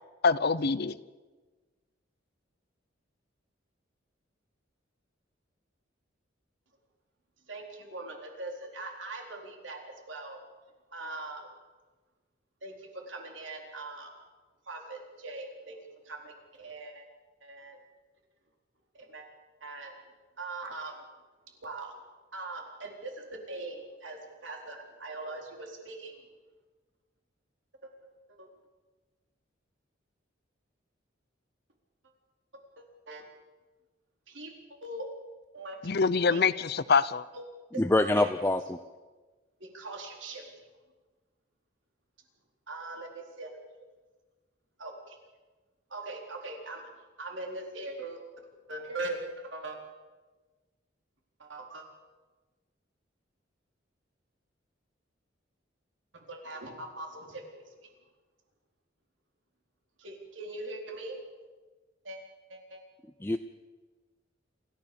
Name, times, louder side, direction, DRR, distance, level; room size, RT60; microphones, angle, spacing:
voice 1, 0.2-1.0 35.8-37.3, left 5 dB, 55° left, 17 dB, 0.7 m, -25 dB
voice 2, 7.5-10.4 10.9-11.5 12.6-14.1 14.7-17.0 17.4-17.8 18.9-19.3 19.6-19.9 20.4-21.0 21.6-21.9 22.3-26.1 27.8-27.9 28.4-28.5 32.8-33.2 34.3-34.5 34.8-35.1 35.5-35.8 36.3-36.4 37.3-37.4 37.7-37.8 38.1-38.3 39.6-40.7 42.7-43.6 44.8-45.2 45.9-46.9 47.2-48.2 48.7-49.8 51.4-51.8 56.1-57.9 60.0-61.2 62.0-62.2 62.5-62.8, right 2 dB, 75° right, 2 dB, 4.2 m, -41 dB
voice 3, 37.8-38.8 63.2-63.4, left 2 dB, 10° left, 8 dB, 0.6 m, -25 dB
27.0 x 14.5 x 7.0 m, 1.3 s
head